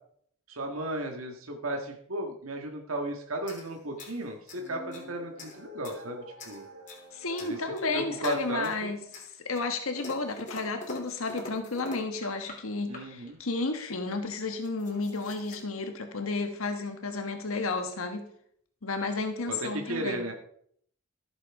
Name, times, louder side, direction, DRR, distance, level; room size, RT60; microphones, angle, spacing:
voice 1, 0.5-6.7 7.4-7.6 7.9-8.9 12.9-13.4 19.5-20.3, right 1 dB, 90° right, 3 dB, 1.8 m, -35 dB
sound 1, 3.4-5.1 5.4-6.0 6.4-7.1 7.4-7.9 8.2-8.8 9.1-12.6 12.9-13.3 14.1-14.2 14.4-15.6, left 2 dB, 35° left, 3.4 m, -45 dB
sound 2, 4.4-8.8, equal, 70° right, 4.4 m, -49 dB
voice 2, 7.1-18.3 18.8-20.2, left 3 dB, 90° left, 6 dB, 1.4 m, -32 dB
15.0 x 8.0 x 4.8 m, 0.66 s
head